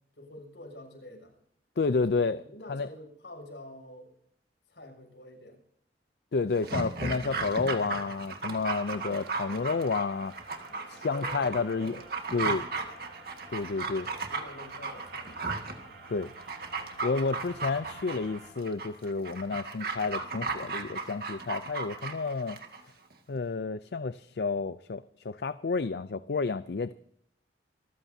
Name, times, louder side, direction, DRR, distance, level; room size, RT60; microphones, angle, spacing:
voice 1, 0.2-1.3 1.9-2.1 2.4-4.1 4.7-5.6 10.7-12.0 12.7-12.9 14.0-15.4, left 1 dB, 85° left, 1 dB, 6.6 m, -47 dB
voice 2, 1.8-2.4 2.7-2.9 6.3-10.3 10.9-11.9 12.3-12.6 13.5-14.1 16.1-16.3 17.0-22.6 23.3-26.9, left 4 dB, 65° left, 14 dB, 0.5 m, -30 dB
Dog, 6.5-22.8 23.1-23.2, right 3 dB, 55° right, 2.0 m, -35 dB
sound 1, 8.7-18.5, right 3 dB, 90° right, 7.9 m, -51 dB
26.5 x 15.0 x 2.8 m, 0.70 s
head